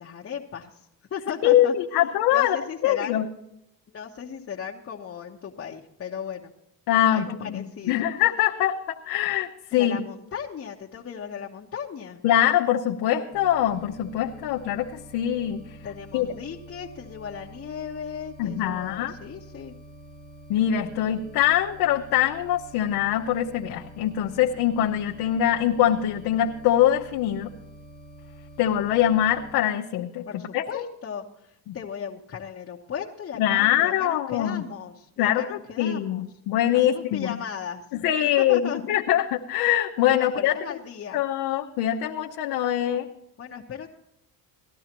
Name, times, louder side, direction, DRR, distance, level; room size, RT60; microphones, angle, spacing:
voice 1, 0.0-1.7 2.3-3.2 3.9-6.5 7.1-8.1 9.7-12.2 15.8-19.8 30.2-36.3 36.7-37.9 38.4-38.8 40.1-41.2 43.4-43.9, left 7 dB, 35° left, -2 dB, 1.1 m, -36 dB
voice 2, 1.4-2.6 2.8-3.3 6.9-10.0 12.2-15.6 16.1-16.3 18.4-19.1 20.5-27.5 28.6-30.2 30.5-30.8 31.7-31.8 33.4-34.6 35.2-37.3 38.0-40.5 41.1-43.1, left 11 dB, 85° left, 0 dB, 0.9 m, -23 dB
sound 1, 13.3-29.5, right 2 dB, 25° right, 1.2 m, -47 dB
18.5 x 12.5 x 3.0 m, 0.80 s
cardioid pair, 105°, 37 cm